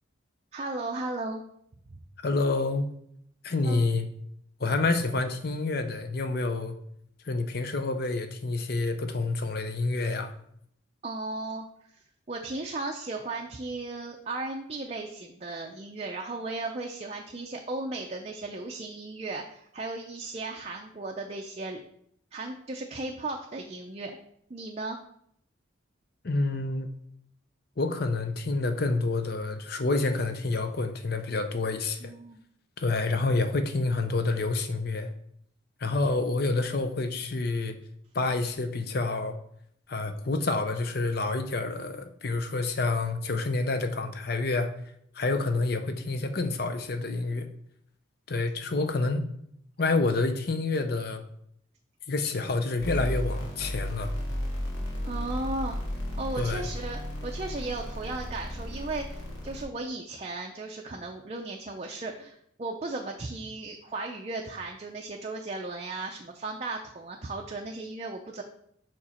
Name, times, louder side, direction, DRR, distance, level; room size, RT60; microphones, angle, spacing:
voice 1, 0.5-1.4 3.6-3.8 11.0-11.7 12.3-21.8 22.3-24.2 24.5-25.0 32.0-32.4 55.0-55.8 56.2-68.4, right 2 dB, 30° right, 2 dB, 0.5 m, -36 dB
voice 2, 2.2-2.9 3.4-4.1 4.6-6.7 7.2-10.3 26.2-26.9 27.8-32.1 32.8-35.1 35.8-37.8 38.1-39.4 39.9-44.7 45.1-47.5 48.3-49.3 49.8-51.2 52.1-54.1 56.4-56.7, left 3 dB, 50° left, 8 dB, 0.6 m, -28 dB
sound 1, 52.8-59.6, equal, 85° left, 1.9 m, -34 dB
5.9 x 4.7 x 4.3 m, 0.70 s
head